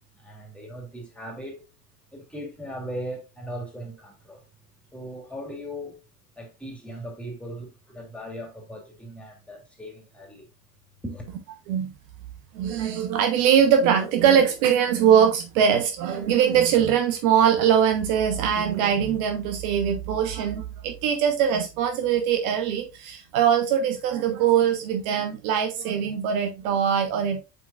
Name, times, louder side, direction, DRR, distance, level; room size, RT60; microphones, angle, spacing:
voice 1, 0.1-1.6 2.1-4.4 4.9-6.0 6.4-10.5 11.0-11.3, equal, ahead, 2.9 m, -38 dB
voice 2, 12.5-27.4, right 8 dB, 55° right, 1.2 m, -22 dB
7.7 x 5.4 x 2.4 m
figure-of-eight pair, 70°, 49 cm